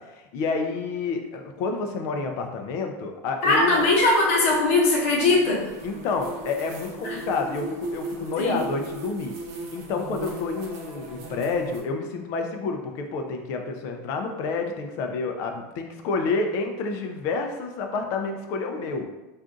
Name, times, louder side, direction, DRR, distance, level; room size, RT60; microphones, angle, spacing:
voice 1, 0.1-3.8 5.8-9.3 9.7-19.1, left 4 dB, 35° left, 4 dB, 0.3 m, -29 dB
voice 2, 3.4-5.6 7.0-7.2 8.4-8.6, left 2 dB, 60° left, -2 dB, 0.9 m, -20 dB
sound 1, 3.4-11.8, right 2 dB, 35° right, 0.5 m, -38 dB
2.4 x 2.4 x 3.7 m, 1.1 s
supercardioid pair, 175°, 8 cm